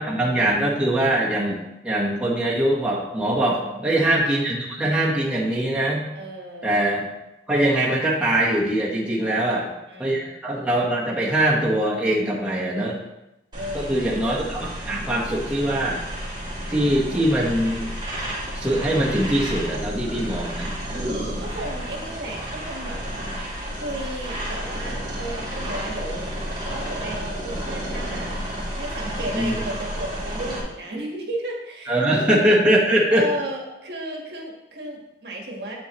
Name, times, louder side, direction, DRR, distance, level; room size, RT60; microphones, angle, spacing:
voice 1, 0.0-6.1 6.6-7.1 7.5-9.7 10.0-13.0 13.7-16.0 16.7-17.9 18.5-20.8 29.3-29.5 31.9-33.3, right 1 dB, 5° right, -5 dB, 1.2 m, -22 dB
voice 2, 3.4-3.9 6.1-6.7 9.2-10.4 13.5-14.1 20.9-23.0 23.8-26.3 26.7-28.4 28.7-32.4 33.1-35.8, right 1 dB, 65° right, -1 dB, 1.5 m, -34 dB
sound 1, 13.5-30.6, equal, 25° right, 2.3 m, -31 dB
8.1 x 7.0 x 3.0 m, 0.93 s
head